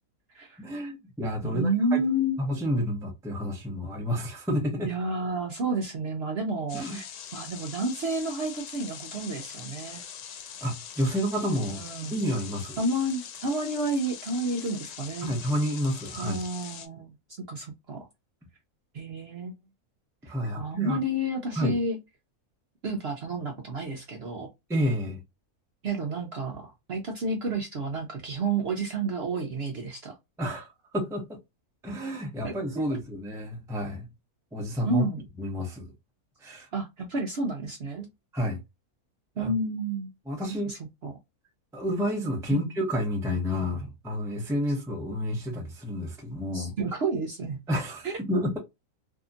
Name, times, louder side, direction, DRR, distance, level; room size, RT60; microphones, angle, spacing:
voice 1, 0.6-2.0 2.4-4.9 6.7-7.0 10.6-11.8 12.1-12.8 15.2-16.4 20.2-21.0 21.6-21.8 24.7-25.2 30.4-31.4 31.8-34.1 34.5-35.0 35.4-35.9 36.4-36.7 38.3-38.6 39.4-39.6 40.3-40.7 41.7-46.7 47.7-48.6, equal, 5° right, 0.5 m, -30 dB
voice 2, 1.4-2.4 4.8-7.0 7.3-10.0 11.7-12.1 12.8-15.3 16.2-17.1 17.5-18.1 18.9-19.5 20.6-22.0 22.8-24.5 25.8-30.1 32.4-32.9 34.8-35.2 36.7-38.1 39.4-40.1 40.7-41.1 42.5-42.8 46.5-47.6 48.0-48.1, right 2 dB, 55° right, 0.7 m, -30 dB
sound 1, 6.7-16.9, left 8 dB, 90° left, 1.2 m, -42 dB
2.8 x 2.6 x 2.4 m
omnidirectional pair, 1.6 m